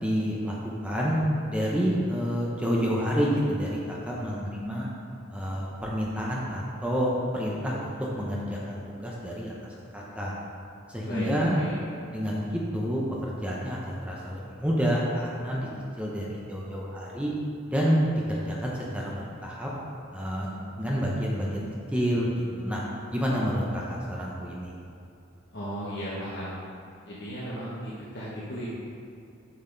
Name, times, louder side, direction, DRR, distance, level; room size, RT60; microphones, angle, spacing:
voice 1, 0.0-0.5 0.8-1.2 1.5-4.9 5.3-7.9 8.1-9.5 9.9-10.3 10.9-11.6 12.1-15.7 16.0-17.3 17.7-18.0 18.3-19.7 20.1-22.8 23.1-24.8, equal, 5° right, -4 dB, 0.8 m, -29 dB
voice 2, 11.0-11.8 25.5-26.5 27.1-28.7, equal, 55° left, -9 dB, 1.3 m, -36 dB
7.2 x 6.4 x 3.9 m, 2.7 s
head